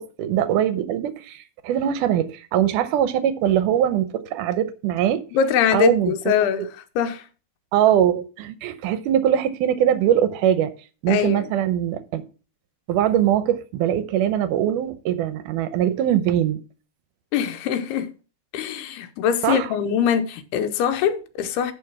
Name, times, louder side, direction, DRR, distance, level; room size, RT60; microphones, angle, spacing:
voice 1, 0.0-5.2 5.7-6.3 7.7-10.7 11.0-12.3 12.9-16.6 19.4-19.7, right 10 dB, 80° right, 1.9 m, -22 dB
voice 2, 5.3-6.6 7.0-7.2 11.1-11.5 17.3-18.1 18.5-21.7, left 8 dB, 90° left, 2.9 m, -22 dB
11.5 x 4.0 x 5.8 m
omnidirectional pair, 4.5 m